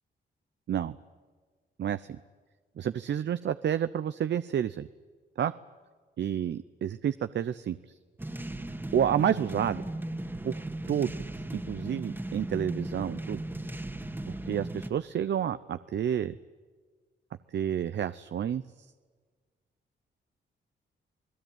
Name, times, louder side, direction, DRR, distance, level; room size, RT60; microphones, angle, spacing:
voice 1, 1.8-2.2 2.8-4.9 5.4-5.5 6.2-8.0 8.9-9.8 10.4-10.6 10.9-11.1 11.5-13.4 14.4-16.4 17.5-18.6, right 9 dB, 60° right, 13 dB, 0.7 m, -29 dB
sound 1, 8.2-14.9, right 1 dB, 10° right, 1.8 m, -37 dB
28.0 x 19.0 x 9.2 m, 1.5 s
cardioid pair, 90°, 20 cm